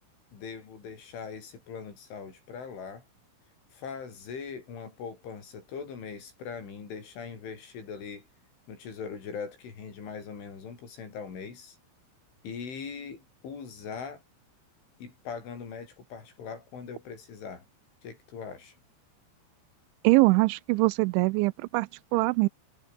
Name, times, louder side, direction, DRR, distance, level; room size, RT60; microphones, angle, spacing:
voice 1, 0.3-3.0 3.7-8.3 8.7-11.8 12.4-14.2 15.0-17.7 18.0-18.8, left 6 dB, 80° left, 8.7 m, -41 dB
voice 2, 20.0-22.5, right 24 dB, 85° right, 2.9 m, -23 dB
omnidirectional pair, 5.4 m